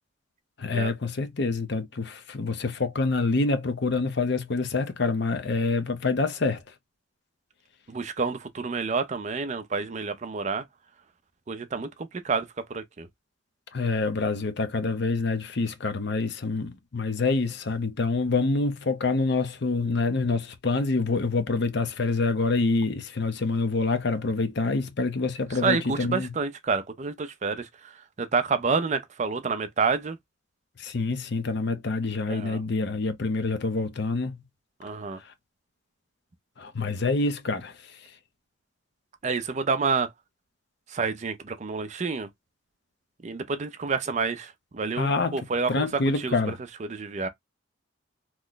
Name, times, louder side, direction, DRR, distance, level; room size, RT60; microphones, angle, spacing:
voice 1, 0.6-6.6 13.7-26.3 30.8-34.4 36.6-37.7 45.0-45.4 45.7-46.6, left 3 dB, 60° left, 0.7 m, -26 dB
voice 2, 7.9-10.6 11.5-13.1 25.6-27.7 28.2-30.2 32.3-32.6 34.8-35.2 39.2-40.1 40.9-42.3 43.2-46.5 46.8-47.3, right 4 dB, 35° right, 0.5 m, -28 dB
3.0 x 2.1 x 3.8 m
head